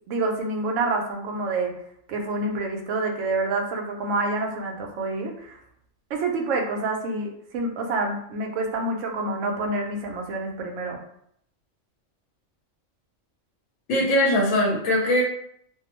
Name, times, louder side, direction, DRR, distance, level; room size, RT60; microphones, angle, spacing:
voice 1, 0.1-1.7 2.1-5.6 6.1-11.0, right 2 dB, 80° right, 2 dB, 0.9 m, -27 dB
voice 2, 13.9-15.2, left 1 dB, 80° left, -2 dB, 1.0 m, -21 dB
2.5 x 2.0 x 2.9 m, 0.69 s
omnidirectional pair, 1.3 m